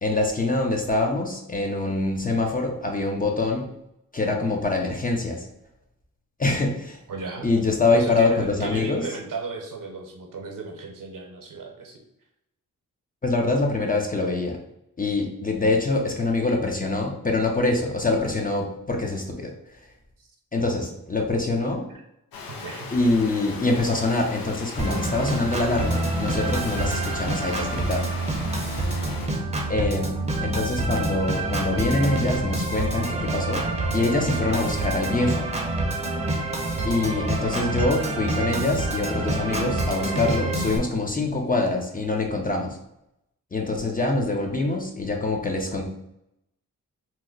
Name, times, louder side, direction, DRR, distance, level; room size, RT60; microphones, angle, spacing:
voice 1, 0.0-3.7 4.1-5.5 6.4-7.0 7.4-9.0 13.2-14.6 15.0-19.5 20.5-21.9 22.9-28.0 29.7-30.1 30.4-33.6 33.9-35.5 36.8-42.8 43.5-45.8, left 2 dB, 25° left, 1 dB, 0.5 m, -24 dB
voice 2, 7.1-7.6 8.0-12.0 20.2-20.3 21.9-22.0 22.5-22.9, right 4 dB, 65° right, 2 dB, 0.8 m, -35 dB
sound 1, 22.3-29.3, left 4 dB, 80° left, 0.7 m, -38 dB
Organ, 24.8-40.8, right 2 dB, 20° right, 0.7 m, -27 dB
2.9 x 2.1 x 3.7 m, 0.83 s
wide cardioid pair, 100°, 35 cm